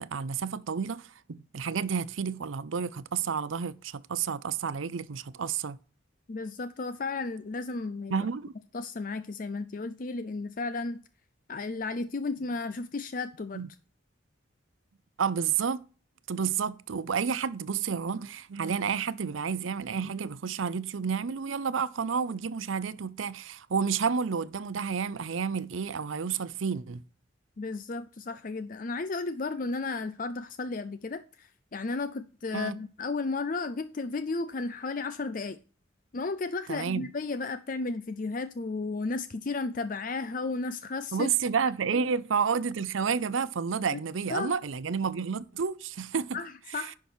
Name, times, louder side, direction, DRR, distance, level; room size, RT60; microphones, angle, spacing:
voice 1, 0.0-5.8 8.1-8.5 13.5-13.7 15.2-15.8 16.3-27.0 32.5-32.8 36.7-37.1 41.1-46.4 46.8-46.9, right 6 dB, 85° right, 0.6 m, -30 dB
voice 2, 6.3-8.3 8.7-11.0 11.5-13.6 27.6-35.6 36.1-41.3 43.9-44.0 44.3-44.5 46.3-46.9, left 3 dB, 45° left, 0.5 m, -33 dB
10.5 x 5.9 x 4.4 m
head